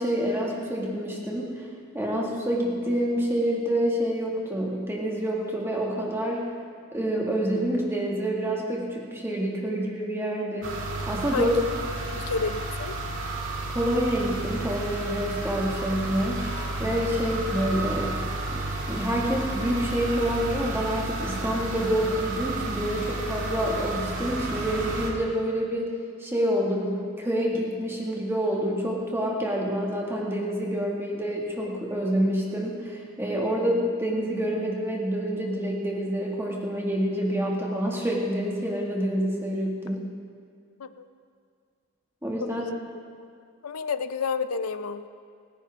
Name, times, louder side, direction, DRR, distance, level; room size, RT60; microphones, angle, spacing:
voice 1, 0.0-1.7 1.9-6.4 6.9-10.8 11.1-11.5 13.7-16.4 16.8-18.2 18.5-25.9 26.2-40.0 42.2-42.6, equal, 10° right, -3 dB, 2.2 m, -27 dB
sound 1, 10.6-25.1, right 2 dB, 60° right, 2.1 m, -32 dB
voice 2, 12.1-12.9 40.8-41.1 42.4-42.8 43.1-43.3 43.6-45.1, left 5 dB, 80° left, 11 dB, 0.6 m, -30 dB
28.5 x 10.5 x 3.7 m, 2.1 s
head